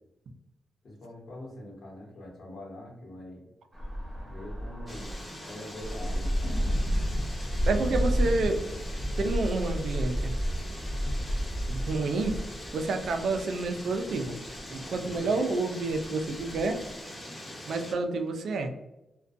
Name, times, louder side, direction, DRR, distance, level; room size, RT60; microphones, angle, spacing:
voice 1, 0.8-3.5 4.2-6.8 15.0-15.3, left 1 dB, 55° left, -2 dB, 0.9 m, -44 dB
sound 1, 3.7-12.6, equal, 20° right, 0.8 m, -31 dB
sound 2, 4.9-17.9, left 1 dB, 20° left, 0.6 m, -43 dB
sound 3, 6.4-15.3 15.5-15.6 15.9-16.9 17.2-17.3, equal, 85° left, 0.6 m, -41 dB
voice 2, 7.7-8.6 9.2-10.4 11.7-12.4 12.7-14.4 14.7-16.8 17.7-18.7, right 3 dB, 75° right, 6 dB, 0.3 m, -29 dB
2.5 x 2.2 x 2.4 m, 0.94 s
wide cardioid pair, 140°, 0 cm